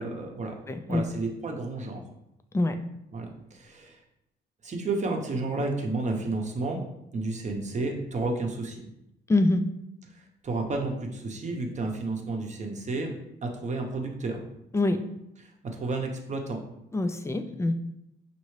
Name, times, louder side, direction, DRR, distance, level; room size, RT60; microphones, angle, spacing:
voice 1, 0.0-0.5 0.9-2.0 3.1-4.0 4.6-6.8 7.1-8.8 10.1-13.1 13.4-14.4 15.4-16.6, right 3 dB, 35° right, 2 dB, 0.9 m, -31 dB
voice 2, 0.7-1.0 2.5-2.8 9.3-9.6 14.7-15.0 16.9-17.7, left 2 dB, 15° left, 7 dB, 0.4 m, -24 dB
5.5 x 2.7 x 3.2 m, 0.84 s
cardioid pair, 90°, 20 cm